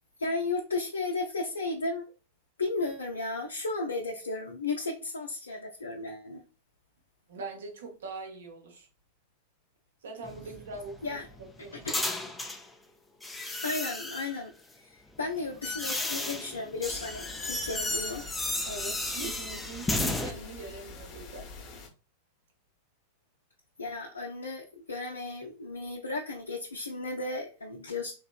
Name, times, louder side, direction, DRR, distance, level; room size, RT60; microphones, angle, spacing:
voice 1, 0.2-2.1 2.6-6.4 11.0-11.2 11.8-12.1 13.6-18.2 23.8-28.1, left 3 dB, 75° left, 0.5 m, -34 dB
voice 2, 7.3-8.9 10.0-11.9 18.6-21.5, right 3 dB, 60° right, 0.9 m, -42 dB
sound 1, 10.2-12.7 13.2-14.4 15.2-20.3, left 2 dB, 5° left, 0.5 m, -34 dB
sound 2, 16.8-21.9, left 3 dB, 35° left, 0.9 m, -46 dB
3.7 x 3.0 x 2.3 m
figure-of-eight pair, 90°, 0 cm